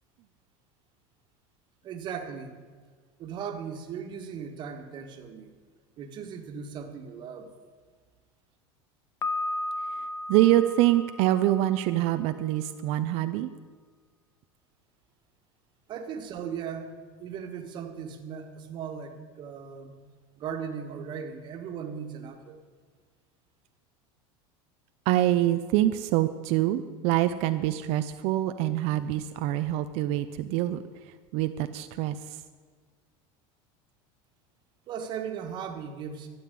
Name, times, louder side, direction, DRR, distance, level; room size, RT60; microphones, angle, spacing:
voice 1, 1.8-2.6 3.2-5.5 6.0-7.5 15.9-16.9 17.2-20.0 20.4-22.6 34.9-36.3, right 7 dB, 35° right, 5 dB, 1.5 m, -37 dB
Piano, 9.2-12.1, left 2 dB, 25° left, 0.5 m, -34 dB
voice 2, 10.3-13.5 25.1-30.8 31.3-32.4, right 14 dB, 55° right, 10 dB, 0.5 m, -25 dB
12.5 x 7.8 x 9.2 m, 1.6 s
supercardioid pair, 150°, 13 cm